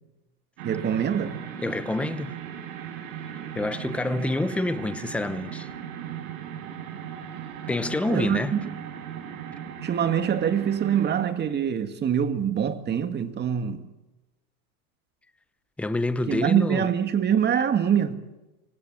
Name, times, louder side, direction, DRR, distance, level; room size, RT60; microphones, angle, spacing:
voice 1, 0.6-1.4 8.1-8.7 9.8-13.8 16.3-18.2, right 8 dB, 20° right, 2.0 m, -24 dB
sound 1, 0.6-11.2, right 9 dB, 65° right, 5.6 m, -37 dB
voice 2, 1.6-2.3 3.5-5.7 7.7-8.5 15.8-16.9, left 2 dB, 5° left, 0.8 m, -27 dB
27.0 x 24.5 x 7.6 m
supercardioid pair, 140°, 45 cm